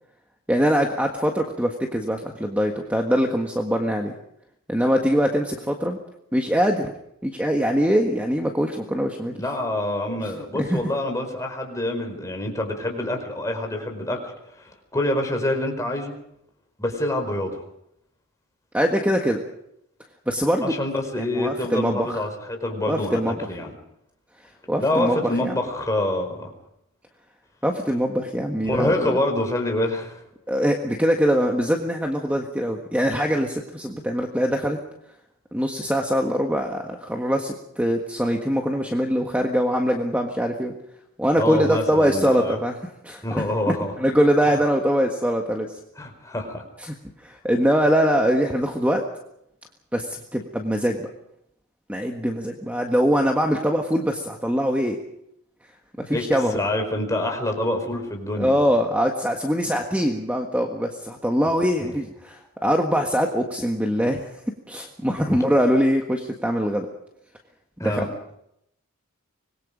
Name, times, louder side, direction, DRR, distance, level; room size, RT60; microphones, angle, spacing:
voice 1, 0.5-4.1 4.7-6.0 6.3-6.9 7.2-9.4 10.2-10.8 18.7-19.4 20.3-20.7 21.2-22.2 22.9-23.4 24.7-25.6 27.6-29.2 30.5-34.8 35.5-40.7 41.2-42.8 43.0-45.7 46.8-47.0 47.2-49.0 49.9-51.1 51.9-55.0 56.0-56.6 58.4-64.2 64.7-66.9 67.8-68.0, equal, 5° right, 2 dB, 1.6 m, -23 dB
voice 2, 9.3-16.1 16.8-17.6 20.6-23.7 24.8-26.5 28.6-30.2 41.3-42.6 43.2-43.9 44.5-44.6 46.0-46.6 56.1-56.3 56.5-58.6 61.8-61.9 65.3-65.4 67.8-68.1, left 1 dB, 15° left, 3 dB, 4.6 m, -26 dB
25.5 x 21.5 x 5.1 m, 0.77 s
head